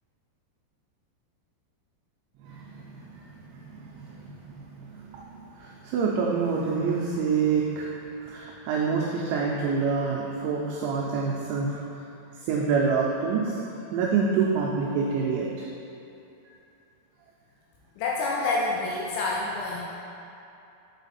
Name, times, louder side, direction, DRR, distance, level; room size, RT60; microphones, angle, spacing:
voice 1, 2.4-5.3 5.6-7.9 8.2-11.8 12.4-13.6 13.9-15.5, right 5 dB, 85° right, -3 dB, 2.6 m, -27 dB
voice 2, 18.0-19.8, left 3 dB, 85° left, -4 dB, 2.5 m, -27 dB
8.2 x 4.2 x 4.1 m, 2.8 s
omnidirectional pair, 5.8 m